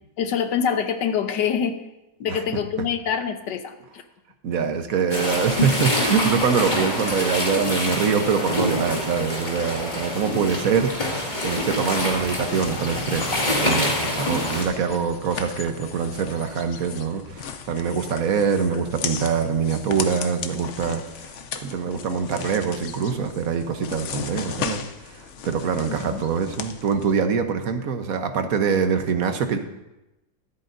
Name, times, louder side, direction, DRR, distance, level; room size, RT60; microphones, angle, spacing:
voice 1, 0.2-1.8 2.2-4.0 25.9-26.3, left 7 dB, 80° left, 8 dB, 1.5 m, -25 dB
voice 2, 4.4-29.6, right 6 dB, 55° right, 7 dB, 1.3 m, -24 dB
sound 1, 5.1-14.6, left 1 dB, 25° left, 2.3 m, -26 dB
sound 2, 11.3-27.1, left 7 dB, 60° left, 0.8 m, -37 dB
23.5 x 8.4 x 2.6 m, 0.95 s
omnidirectional pair, 1.9 m